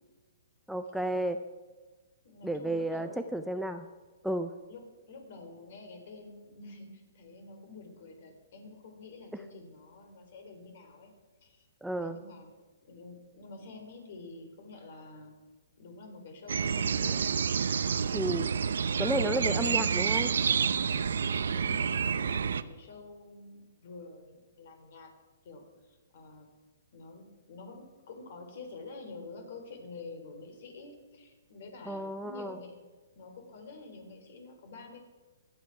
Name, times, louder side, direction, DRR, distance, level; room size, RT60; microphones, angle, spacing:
voice 1, 0.7-1.4 2.4-3.9 4.2-4.5 11.8-12.2 18.1-18.5 19.0-20.3 31.9-32.6, right 1 dB, ahead, 7 dB, 0.4 m, -32 dB
voice 2, 2.2-3.3 4.7-4.8 5.1-11.1 11.4-11.7 11.9-12.5 12.9-15.4 15.8-17.3 21.5-25.1 25.4-26.5 26.9-32.8 33.2-35.0, left 3 dB, 50° left, 4 dB, 3.8 m, -48 dB
sound 1, 16.5-22.6, right 6 dB, 80° right, 0.7 m, -29 dB
24.0 x 9.2 x 4.8 m, 1.3 s
hypercardioid pair, 160°, 0 cm